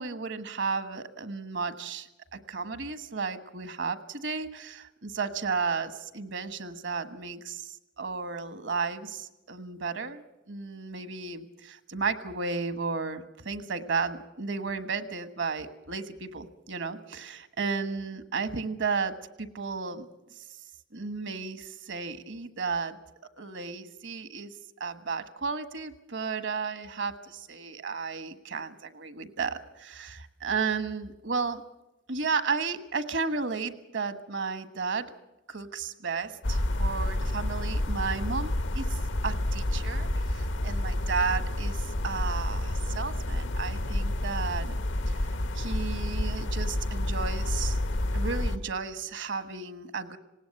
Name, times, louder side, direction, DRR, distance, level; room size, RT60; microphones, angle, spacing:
voice 1, 0.0-10.2 10.5-20.1 20.4-20.5 20.9-23.0 23.4-24.5 24.8-31.6 32.1-35.2 35.5-44.8 45.1-45.2 45.5-47.8 48.1-50.2, right 4 dB, 70° right, 11 dB, 1.3 m, -33 dB
sound 1, 36.4-48.6, left 1 dB, 80° left, 1.0 m, -29 dB
19.5 x 17.5 x 7.7 m, 0.98 s
head